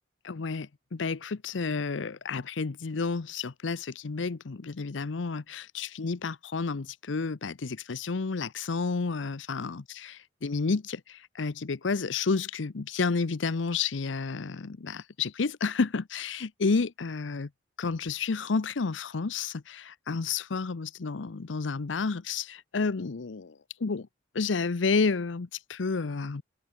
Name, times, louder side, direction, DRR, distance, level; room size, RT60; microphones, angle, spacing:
voice 1, 0.2-17.5 17.8-24.1 24.3-26.4, left 4 dB, 80° left, 0.7 m, -31 dB
head